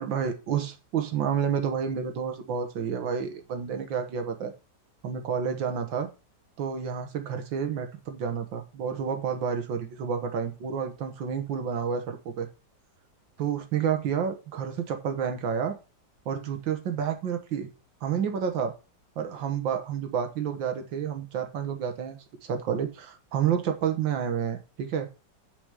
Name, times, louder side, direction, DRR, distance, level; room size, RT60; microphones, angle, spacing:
voice 1, 0.0-4.5 5.0-6.1 6.6-12.5 13.4-15.8 16.3-17.7 18.0-18.7 19.2-25.1, right 7 dB, 85° right, 7 dB, 2.0 m, -30 dB
7.0 x 5.0 x 6.6 m, 0.32 s
omnidirectional pair, 2.0 m